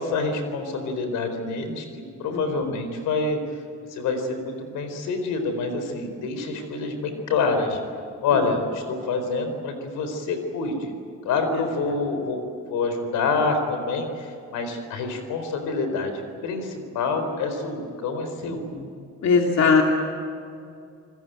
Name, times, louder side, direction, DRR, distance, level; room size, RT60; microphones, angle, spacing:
voice 1, 0.0-3.4 3.9-7.8 8.2-10.9 11.2-12.4 12.7-18.6, left 4 dB, 90° left, 7 dB, 4.3 m, -27 dB
voice 2, 19.2-19.8, left 5 dB, 65° left, 1 dB, 2.8 m, -19 dB
27.0 x 20.0 x 9.2 m, 2.4 s
cardioid pair, 90°, 30 cm